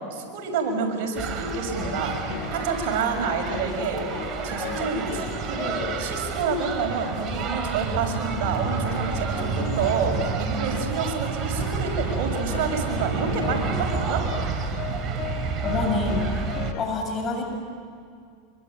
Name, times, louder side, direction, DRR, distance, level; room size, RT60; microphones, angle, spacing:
voice 1, 0.1-2.1 2.5-4.0 4.4-14.2, right 4 dB, 60° right, 1 dB, 6.5 m, -28 dB
sound 1, 1.2-16.7, right 6 dB, 40° right, 2.7 m, -30 dB
sound 2, 1.7-16.8, left 12 dB, 55° left, 1.3 m, -38 dB
voice 2, 15.6-16.4 16.8-17.4, left 3 dB, 30° left, 3 dB, 7.1 m, -27 dB
26.0 x 23.5 x 9.2 m, 2.2 s
hypercardioid pair, 110°, 0 cm